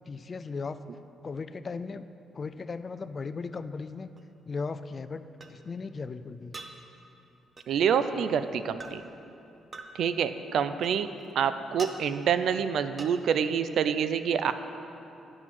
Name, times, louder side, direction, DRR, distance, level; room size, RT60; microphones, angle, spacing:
voice 1, 0.1-0.8 1.2-2.1 2.3-4.1 4.5-5.2 5.5-6.5, left 4 dB, 35° left, 12 dB, 0.3 m, -36 dB
sound 1, 4.2-4.3 5.4-5.5 6.5-6.7 7.6-7.7 8.8-9.0 9.7-9.9 10.8-11.3 11.8-12.0 13.0-13.1, right 3 dB, 30° right, 0.7 m, -42 dB
voice 2, 7.7-9.0 9.9-11.1 11.4-14.5, right 7 dB, 70° right, 11 dB, 0.4 m, -27 dB
10.0 x 6.0 x 6.0 m, 2.8 s
cardioid pair, 90°, 0 cm